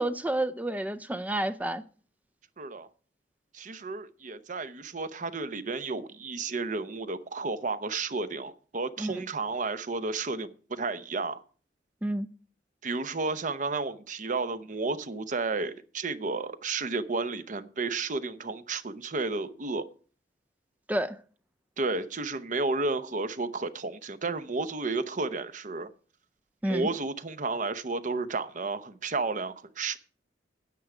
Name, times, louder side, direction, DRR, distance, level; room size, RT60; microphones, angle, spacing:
voice 1, 0.0-1.8 9.0-9.1 12.0-12.3 20.9-21.2 26.6-26.9, right 1 dB, 10° right, 0.4 m, -29 dB
voice 2, 2.6-2.9 3.5-11.4 12.8-19.8 21.8-25.9 26.6-30.0, right 3 dB, 45° right, 0.7 m, -32 dB
9.9 x 9.1 x 4.9 m
head